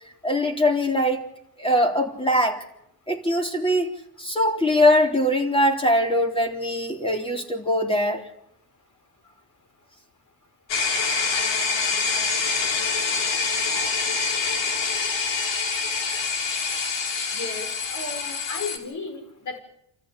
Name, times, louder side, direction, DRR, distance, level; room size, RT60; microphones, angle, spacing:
voice 1, 0.2-1.2 1.6-2.6 3.1-3.9 4.2-8.3, left 1 dB, 10° left, 3 dB, 3.7 m, -22 dB
sound 1, 10.7-18.8, left 4 dB, 85° left, 3.5 m, -25 dB
voice 2, 17.3-19.6, left 3 dB, 45° left, 6 dB, 5.8 m, -34 dB
28.5 x 14.0 x 9.3 m, 0.77 s
cardioid pair, 115°, 43 cm